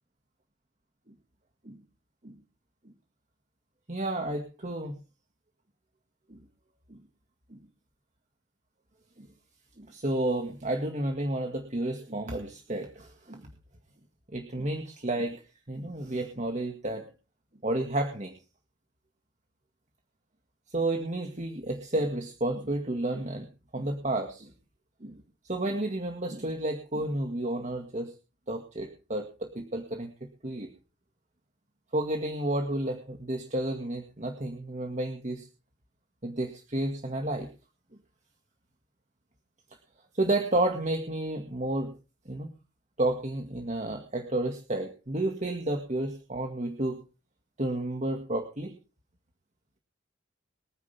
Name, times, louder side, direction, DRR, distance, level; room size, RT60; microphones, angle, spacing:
voice 1, 3.9-5.0 6.3-6.4 6.9-7.0 7.5-7.6 9.2-9.3 9.8-13.5 14.3-15.4 15.7-17.1 17.6-18.3 20.7-23.5 23.7-24.5 25.0-28.1 28.5-30.7 31.9-35.5 36.2-37.5 40.1-41.9 42.3-42.5 43.0-47.0 47.6-48.8, right 1 dB, 35° right, 4 dB, 2.1 m, -31 dB
23.5 x 9.8 x 3.5 m, 0.32 s
head